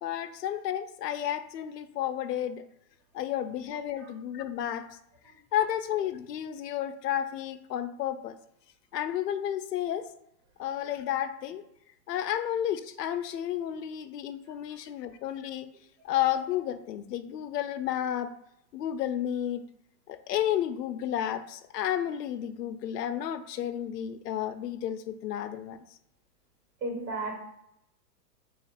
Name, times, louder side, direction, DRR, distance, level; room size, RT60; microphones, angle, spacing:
voice 1, 0.0-2.6 3.1-4.9 5.5-8.4 8.9-10.1 10.6-11.6 12.1-15.7 16.0-18.3 18.7-19.6 20.1-25.8, left 11 dB, 80° left, 11 dB, 0.6 m, -31 dB
voice 2, 26.8-27.4, right 2 dB, 85° right, -1 dB, 1.3 m, -34 dB
3.2 x 2.4 x 4.3 m, 0.79 s
hypercardioid pair, 180°, 48 cm